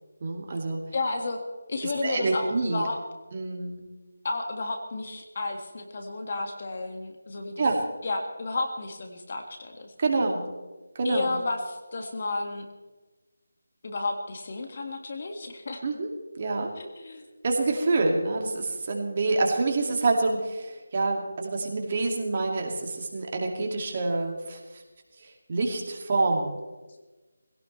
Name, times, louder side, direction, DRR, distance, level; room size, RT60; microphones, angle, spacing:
voice 1, 0.2-0.8 1.8-2.8 3.3-3.8 7.6-7.8 10.0-10.4 11.0-11.3 15.8-16.1 16.4-16.7 17.4-24.6 25.2-26.6, right 3 dB, 40° right, 1 dB, 2.4 m, -27 dB
voice 2, 0.9-1.4 1.7-3.0 4.2-7.6 8.0-9.9 11.0-12.7 13.8-15.8 16.8-17.2, left 3 dB, 45° left, 4 dB, 1.9 m, -32 dB
21.5 x 17.0 x 3.3 m, 1.2 s
figure-of-eight pair, 165°, 0 cm